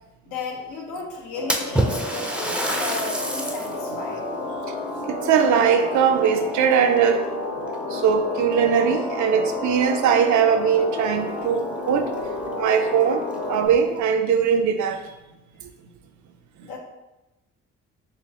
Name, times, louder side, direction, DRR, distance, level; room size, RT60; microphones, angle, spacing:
voice 1, 0.2-4.2 16.6-16.8, left 3 dB, 85° left, 0 dB, 1.0 m, -34 dB
sound 1, 1.3-13.7, left 2 dB, 50° left, 1.2 m, -31 dB
Splash splatter, 1.5-3.8 4.3-4.4 5.3-6.3 6.7-7.2 8.0-8.1 8.5-8.6 10.8-10.9 11.2-11.3 11.9-12.0 12.4-12.5 13.2-13.8, right 1 dB, 5° right, 0.5 m, -27 dB
voice 2, 5.0-7.3 7.9-12.2 12.6-15.0 15.6-15.7, right 7 dB, 70° right, 7 dB, 0.5 m, -20 dB
4.3 x 3.1 x 2.9 m, 1.0 s
cardioid pair, 90°, 30 cm